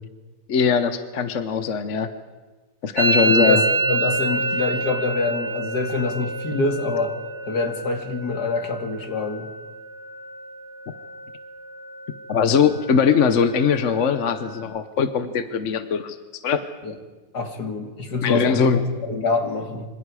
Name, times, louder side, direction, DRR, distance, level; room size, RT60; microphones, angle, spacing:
voice 1, 0.5-2.1 2.8-3.6 12.3-16.6 18.2-18.8, left 6 dB, 50° left, 9 dB, 1.2 m, -21 dB
Musical instrument, 3.0-10.6 10.9-11.4 11.7-12.3 12.6-14.6, right 2 dB, 75° right, 2.4 m, -28 dB
voice 2, 3.2-7.2 7.5-9.5 16.8-16.9 17.3-19.8, left 3 dB, 75° left, 4 dB, 2.9 m, -25 dB
26.5 x 26.5 x 4.9 m, 1.3 s
omnidirectional pair, 1.8 m